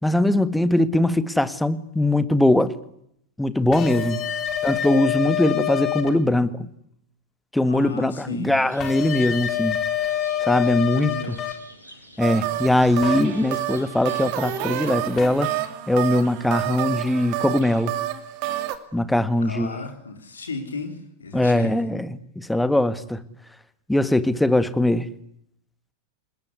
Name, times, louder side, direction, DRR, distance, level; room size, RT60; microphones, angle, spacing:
voice 1, 0.0-2.7 3.4-4.2 4.6-6.7 7.5-9.8 10.4-11.1 12.2-15.5 15.9-18.0 18.9-19.8 21.3-23.2 23.9-25.1, left 1 dB, 5° left, 14 dB, 1.8 m, -21 dB
sound 1, 3.7-6.1 8.8-11.5 13.0-13.2 15.2-15.3, left 10 dB, 30° left, 4.2 m, -26 dB
voice 2, 7.7-8.6 10.9-11.4 19.4-21.7, left 4 dB, 75° left, 7 dB, 4.0 m, -34 dB
sound 2, 8.5-15.0, left 1 dB, 85° right, 7.2 m, -47 dB
sound 3, 12.2-18.8, right 14 dB, 45° right, 2.6 m, -29 dB
29.5 x 20.5 x 9.8 m, 0.74 s
figure-of-eight pair, 90°, 0 cm